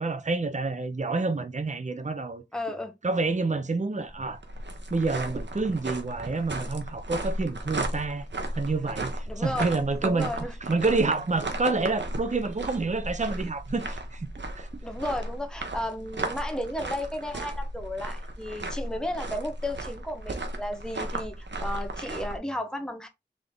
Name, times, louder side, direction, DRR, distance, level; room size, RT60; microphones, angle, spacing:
voice 1, 0.0-2.4 3.0-4.4 4.9-8.2 8.5-10.3 10.7-14.7, right 3 dB, 40° right, 0.6 m, -28 dB
voice 2, 2.5-2.9 9.3-9.7 10.0-10.5 14.8-23.1, left 1 dB, 5° left, 0.9 m, -33 dB
sound 1, 4.0-22.4, right 1 dB, 80° right, 0.8 m, -35 dB
3.6 x 3.6 x 3.7 m
wide cardioid pair, 45°, 18 cm